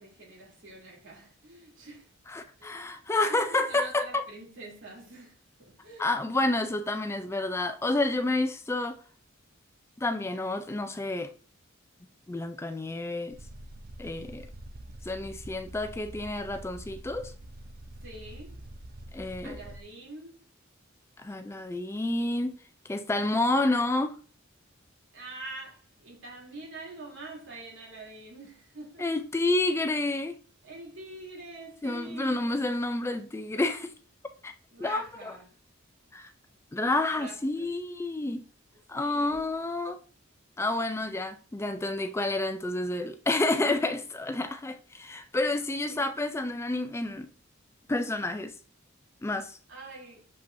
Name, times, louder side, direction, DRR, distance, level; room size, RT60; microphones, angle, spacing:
voice 1, 0.0-2.1 2.6-3.0 3.3-6.2 18.0-18.6 19.4-20.4 25.1-29.2 30.6-32.6 34.7-35.5 37.1-37.7 39.0-39.5 45.9-46.1 49.7-50.3, right 2 dB, 65° right, 2.8 m, -45 dB
voice 2, 2.3-4.2 6.0-9.0 10.0-11.3 12.3-13.4 14.0-14.5 15.0-17.3 19.1-19.6 21.2-22.6 22.8-24.2 29.0-30.4 31.8-33.9 34.4-34.5 34.8-35.3 36.1-36.3 36.7-38.5 38.9-40.0 40.6-47.3 47.9-48.6 49.2-49.6, left 2 dB, 15° left, 0.4 m, -29 dB
sound 1, 13.3-19.8, right 1 dB, 50° right, 0.6 m, -45 dB
6.8 x 5.4 x 2.6 m
head